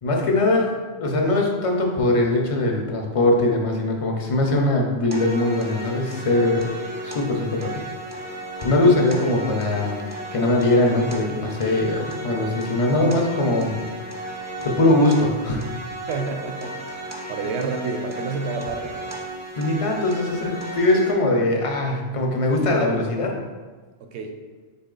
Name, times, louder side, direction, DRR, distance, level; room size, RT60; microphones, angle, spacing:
voice 1, 0.0-6.7 7.0-8.1 8.6-13.8 14.6-15.6 19.6-23.4, left 2 dB, 40° left, 0 dB, 0.5 m, -21 dB
sound 1, 5.1-21.1, right 1 dB, 20° right, 0.5 m, -35 dB
voice 2, 16.1-16.8 17.1-18.9 24.0-24.4, right 4 dB, 80° right, 5 dB, 0.9 m, -29 dB
4.1 x 3.1 x 3.8 m, 1.4 s
omnidirectional pair, 1.1 m